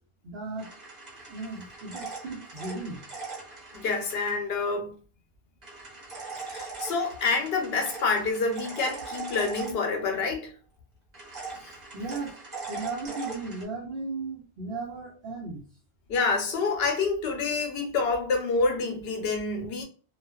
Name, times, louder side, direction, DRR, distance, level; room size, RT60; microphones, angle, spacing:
voice 1, 0.2-0.7 1.3-3.0 11.9-12.4 12.7-15.6, right 3 dB, 75° right, 1.0 m, -36 dB
sound 1, 0.6-4.4 5.6-10.2 11.1-13.6, right 4 dB, 45° right, 1.0 m, -41 dB
voice 2, 3.7-4.9 6.5-10.5 16.1-19.8, left 4 dB, 75° left, 0.9 m, -27 dB
2.4 x 2.3 x 2.3 m
omnidirectional pair, 1.1 m